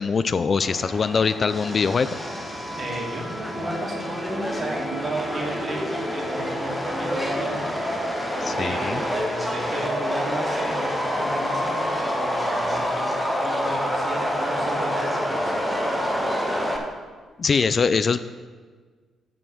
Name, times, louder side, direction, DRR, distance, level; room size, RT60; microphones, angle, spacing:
voice 1, 0.0-2.1 8.4-9.0 17.4-18.2, left 5 dB, 45° left, 13 dB, 0.3 m, -22 dB
Subway metro underground, 0.6-16.8, equal, 5° left, 1.5 m, -27 dB
voice 2, 2.8-7.6 8.6-15.6, right 1 dB, 35° right, -2 dB, 2.5 m, -33 dB
7.1 x 5.7 x 6.1 m, 1.5 s
hypercardioid pair, 45°, 0 cm